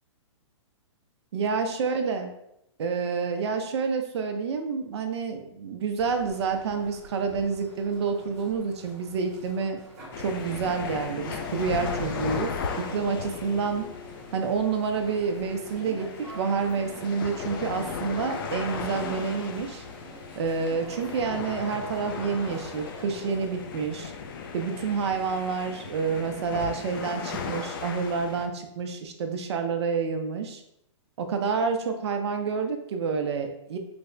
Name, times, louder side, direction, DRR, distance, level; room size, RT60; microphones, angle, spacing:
voice 1, 1.3-2.3 2.8-9.8 10.2-13.8 14.3-19.8 20.4-24.1 24.5-30.6 31.2-33.8, right 5 dB, 60° right, 5 dB, 0.5 m, -28 dB
sound 1, 6.0-23.5, equal, 15° right, 1.0 m, -47 dB
sound 2, 10.1-28.5, left 5 dB, 45° left, 0.4 m, -36 dB
3.3 x 2.1 x 3.8 m, 0.80 s
hypercardioid pair, 155°, 16 cm